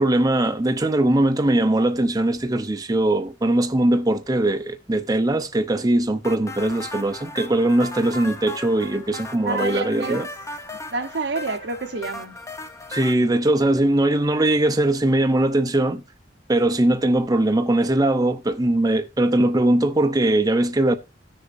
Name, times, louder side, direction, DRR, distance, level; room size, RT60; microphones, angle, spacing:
voice 1, 0.0-10.3 12.9-16.0 16.5-21.0, right 1 dB, 20° right, 0.7 m, -20 dB
sound 1, 6.2-13.2, left 2 dB, 20° left, 0.9 m, -36 dB
voice 2, 9.4-10.3 10.9-12.4, right 3 dB, 75° right, 1.0 m, -28 dB
17.0 x 6.6 x 2.5 m
head